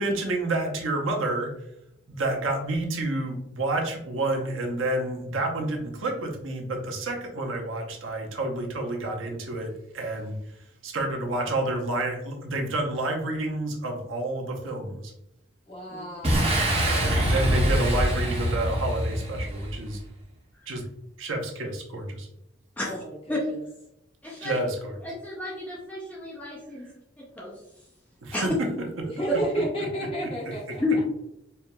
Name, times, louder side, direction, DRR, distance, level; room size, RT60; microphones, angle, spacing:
voice 1, 0.0-1.5 2.1-10.3 10.8-15.1 16.5-20.0 20.7-20.8 21.2-22.3 24.4-24.9 28.2-28.5, right 2 dB, 90° right, 1 dB, 0.8 m, -29 dB
voice 2, 15.7-16.7 22.8-23.4 29.1-30.8, equal, 30° left, -5 dB, 1.3 m, -32 dB
Boom, 16.2-19.9, equal, 30° right, 0.6 m, -24 dB
voice 3, 24.2-24.6 25.0-26.9 27.2-27.6 28.3-28.5 30.8-31.1, left 2 dB, 10° left, -4 dB, 0.5 m, -31 dB
4.5 x 2.8 x 2.2 m, 0.81 s
head